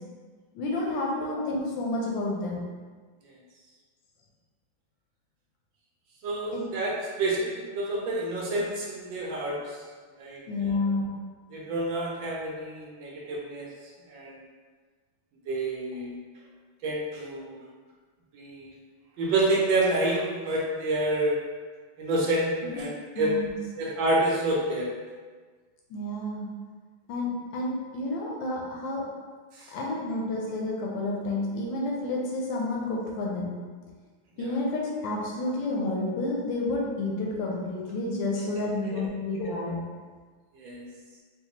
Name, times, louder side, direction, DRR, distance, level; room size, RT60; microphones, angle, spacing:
voice 1, 0.5-2.7 6.5-6.7 10.5-11.2 22.6-22.9 23.1-23.5 25.9-26.5 27.1-29.1 29.7-33.6 34.4-39.8, left 2 dB, 75° left, -2 dB, 1.2 m, -30 dB
voice 2, 6.2-7.5 7.7-9.6 10.2-10.8 11.5-13.7 14.1-14.3 15.5-16.2 16.8-17.6 18.3-18.7 19.2-21.4 22.0-23.5 23.8-24.9 29.5-29.7 38.9-39.0 40.5-40.9, right 1 dB, 75° right, -3 dB, 1.3 m, -28 dB
4.0 x 2.3 x 2.8 m, 1.5 s
omnidirectional pair, 2.2 m